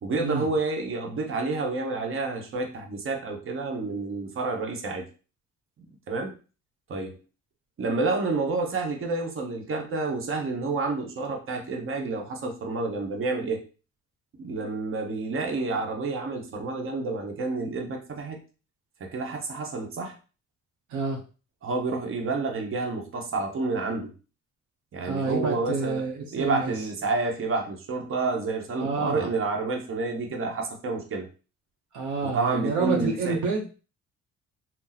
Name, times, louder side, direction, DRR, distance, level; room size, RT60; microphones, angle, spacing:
voice 1, 0.0-5.1 6.1-6.3 6.9-7.2 7.8-13.6 14.4-18.4 19.0-20.2 21.6-24.1 24.9-31.3 32.2-33.4, right 3 dB, 45° right, 2 dB, 0.9 m, -29 dB
voice 2, 25.0-26.7 28.8-29.3 31.9-33.7, right 4 dB, 75° right, 1 dB, 0.7 m, -28 dB
2.7 x 2.0 x 3.9 m, 0.34 s
cardioid pair, 90°, 30 cm